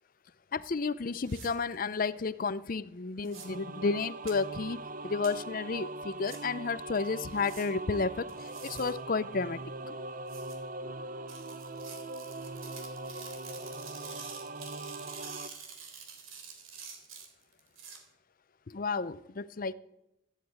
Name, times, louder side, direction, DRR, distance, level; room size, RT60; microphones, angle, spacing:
voice 1, 0.5-4.8 5.0-8.3 8.6-9.6 9.8-9.9 18.7-19.7, left 4 dB, 45° left, 17 dB, 0.5 m, -32 dB
sound 1, 1.2-1.5 3.2-3.5 4.3-4.4 5.2-5.3 6.3-6.4 7.3-7.7 8.3-8.9 10.3-10.5 11.3-18.0, right 6 dB, 85° right, 3.6 m, -47 dB
sound 2, 3.3-15.5, right 2 dB, 40° right, 0.8 m, -41 dB
15.0 x 10.0 x 9.3 m, 0.88 s
head